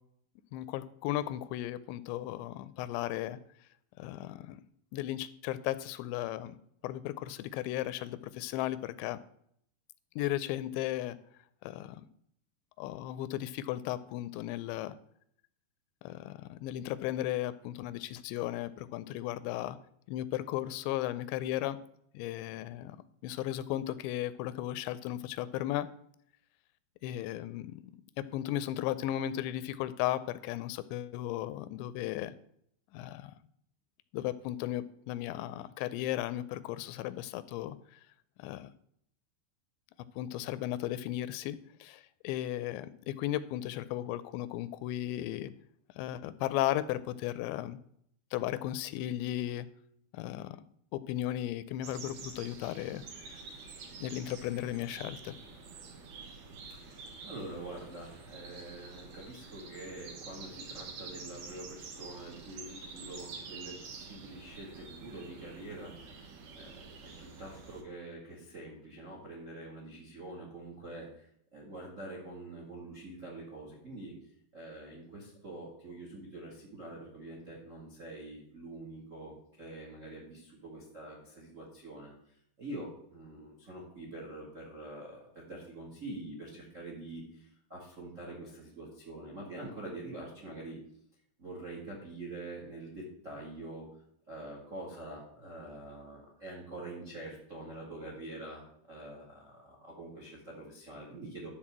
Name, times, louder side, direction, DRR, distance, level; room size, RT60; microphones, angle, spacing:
voice 1, 0.5-3.4 4.0-4.6 4.9-6.5 6.8-9.2 10.2-11.2 11.6-12.1 12.8-14.9 16.0-19.8 20.1-21.8 22.1-23.0 23.2-25.9 27.0-27.8 28.3-32.3 32.9-33.3 34.1-37.8 38.4-38.7 40.2-45.5 46.0-47.8 48.3-49.7 50.1-50.6 50.9-53.0 54.0-55.3, left 13 dB, 85° left, 15 dB, 2.7 m, -35 dB
sound 1, 51.8-67.8, right 4 dB, 85° right, 1.5 m, -48 dB
voice 2, 56.7-71.3 71.5-74.1 74.5-82.1 82.6-90.8 91.4-93.9 94.3-101.5, right 2 dB, 60° right, -1 dB, 0.7 m, -45 dB
12.0 x 4.4 x 7.3 m, 0.69 s
omnidirectional pair, 5.2 m